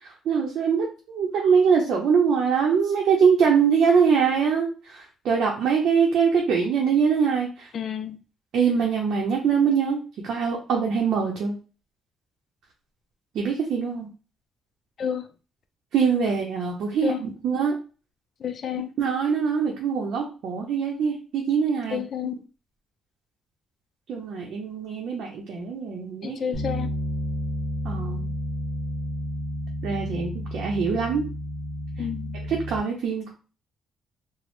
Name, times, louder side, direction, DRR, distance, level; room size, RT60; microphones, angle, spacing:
voice 1, 0.0-7.7 8.5-10.0 10.2-11.6 13.3-14.1 15.9-17.8 19.0-22.0 24.1-26.5 27.8-28.3 29.8-31.2 32.5-33.3, right 6 dB, 70° right, 0.6 m, -23 dB
voice 2, 7.7-8.2 15.0-15.3 17.0-17.3 18.4-18.9 21.9-22.4 26.2-26.9 32.0-32.4, left 8 dB, 55° left, 0.4 m, -30 dB
Bass guitar, 26.5-32.8, equal, 40° right, 0.9 m, -31 dB
2.9 x 2.0 x 3.0 m
cardioid pair, 90°, 0 cm